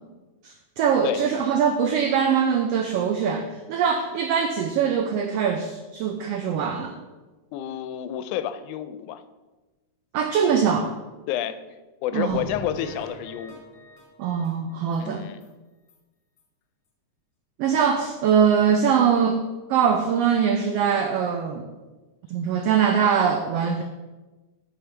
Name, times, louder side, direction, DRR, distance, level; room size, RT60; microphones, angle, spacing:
voice 1, 0.4-6.9 10.1-10.9 12.1-12.4 14.2-15.3 17.6-19.4 19.7-21.7 22.3-23.8, right 7 dB, 85° right, 6 dB, 1.3 m, -22 dB
voice 2, 7.5-9.2 11.3-11.6 12.0-13.6 15.0-15.5, left 11 dB, 90° left, 11 dB, 2.0 m, -29 dB
sound 1, 12.3-15.0 15.4-15.5 15.9-16.0 16.4-16.5, right 1 dB, 45° left, 1.2 m, -43 dB
8.0 x 5.2 x 4.5 m, 1.2 s
omnidirectional pair, 3.4 m